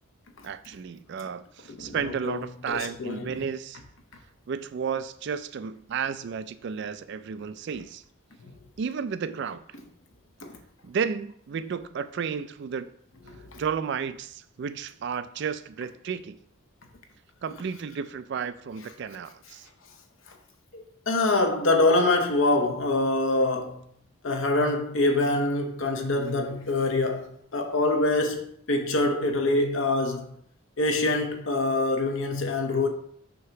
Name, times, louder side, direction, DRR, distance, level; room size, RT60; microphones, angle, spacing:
voice 1, 0.4-3.8 4.5-8.0 8.8-9.6 10.8-12.9 13.6-16.4 17.4-19.7, right 6 dB, 55° right, 0.3 m, -32 dB
voice 2, 2.7-3.3 8.4-8.5 10.4-10.5 13.3-13.6 20.7-23.8 24.2-30.3 30.8-32.9, left 2 dB, 65° left, 0.9 m, -25 dB
6.3 x 2.9 x 5.7 m
head